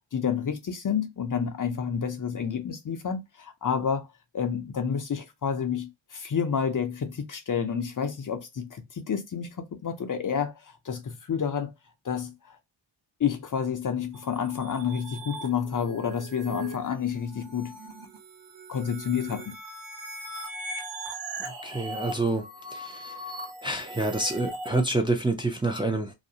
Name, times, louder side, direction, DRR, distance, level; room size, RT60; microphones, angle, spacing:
voice 1, 0.1-4.1 4.3-11.7 12.0-12.6 13.2-17.8 18.7-19.6, left 7 dB, 45° left, 0.5 m, -29 dB
sound 1, 14.1-24.8, right 2 dB, 60° right, 0.7 m, -40 dB
voice 2, 21.4-22.4 22.7-23.1 23.6-26.1, right 2 dB, 10° right, 0.4 m, -27 dB
2.5 x 2.0 x 2.7 m
wide cardioid pair, 90°, 46 cm